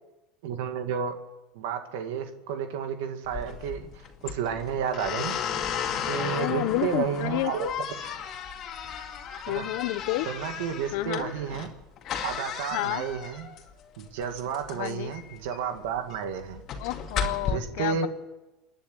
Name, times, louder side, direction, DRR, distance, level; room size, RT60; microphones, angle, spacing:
voice 1, 0.4-1.2 1.5-5.3 6.1-7.7 9.5-9.7 10.3-11.7 12.2-13.5 14.0-16.6 17.4-18.1, right 7 dB, 80° right, 6 dB, 2.1 m, -31 dB
sound 1, 3.2-17.5, left 7 dB, 40° left, 2.2 m, -35 dB
voice 2, 6.3-7.5 9.5-10.3 10.9-11.3 12.7-13.0 14.7-15.1 16.8-18.1, left 18 dB, 70° left, 14 dB, 1.1 m, -30 dB
28.0 x 10.5 x 9.2 m, 1.0 s
supercardioid pair, 140°, 0 cm